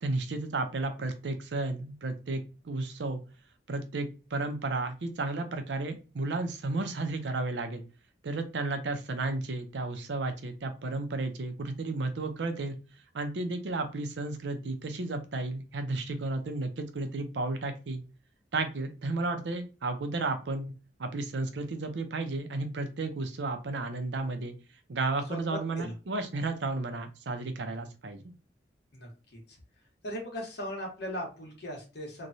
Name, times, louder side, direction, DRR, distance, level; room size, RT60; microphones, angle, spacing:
voice 1, 0.0-3.2 3.7-7.8 8.2-12.8 13.1-18.0 18.5-20.7 21.0-24.6 24.9-28.3, right 2 dB, 75° right, 7 dB, 0.6 m, -33 dB
voice 2, 25.3-25.9 28.9-29.6 30.0-32.3, equal, 65° left, 0 dB, 1.2 m, -38 dB
3.0 x 2.2 x 2.6 m, 0.32 s
head